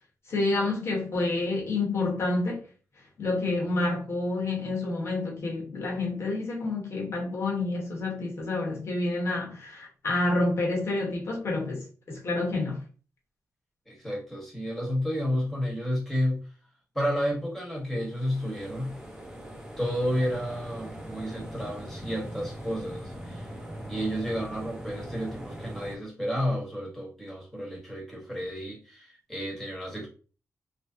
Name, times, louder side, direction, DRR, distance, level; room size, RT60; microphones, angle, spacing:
voice 1, 0.3-2.6 3.2-12.8, left 2 dB, 50° left, 1.1 m, -28 dB
voice 2, 13.9-16.4 16.9-18.9 19.8-23.5 23.9-30.1, equal, 5° left, 1.2 m, -31 dB
sound 1, 17.9-26.0, equal, 10° right, 0.8 m, -41 dB
3.0 x 2.7 x 2.7 m
wide cardioid pair, 165°, 6 cm